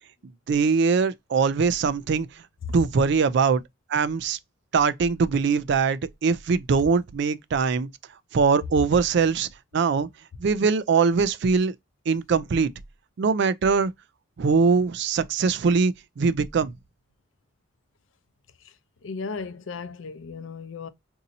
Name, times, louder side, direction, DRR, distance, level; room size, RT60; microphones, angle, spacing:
voice 1, 0.5-2.3 2.7-3.6 3.9-4.4 4.7-7.9 8.3-10.1 10.4-11.7 12.1-12.7 13.2-13.9 14.4-16.7, right 5 dB, 60° right, 0.4 m, -22 dB
voice 2, 19.0-20.9, left 4 dB, 75° left, 0.5 m, -35 dB
4.0 x 2.7 x 2.6 m
head